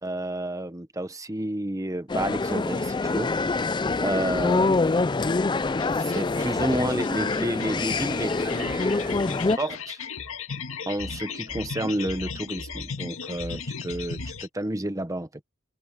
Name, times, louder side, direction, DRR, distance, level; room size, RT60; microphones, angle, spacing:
voice 1, 0.0-3.3 4.0-5.0 6.0-9.2 9.6-10.0 10.9-15.3, right 1 dB, 15° right, 1.1 m, -30 dB
sound 1, 2.1-9.6, left 3 dB, 20° left, 0.4 m, -25 dB
sound 2, 5.8-14.5, left 5 dB, 75° left, 2.1 m, -36 dB
open air
head